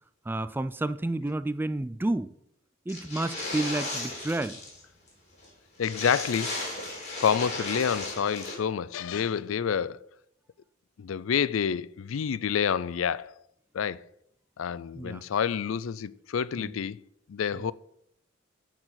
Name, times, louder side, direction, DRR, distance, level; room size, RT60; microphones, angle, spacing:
voice 1, 0.3-2.3 2.9-4.6 14.9-15.2 16.6-16.7 17.5-17.6, right 2 dB, 10° right, 0.3 m, -30 dB
sound 1, 2.9-4.8 5.1-5.2 5.4-5.5 5.8-8.5, left 2 dB, 35° left, 3.5 m, -35 dB
voice 2, 5.8-6.7 7.2-10.0 11.0-13.3 13.7-14.0 14.6-17.0 17.3-17.7, left 7 dB, 75° left, 0.4 m, -28 dB
14.0 x 4.7 x 5.8 m
head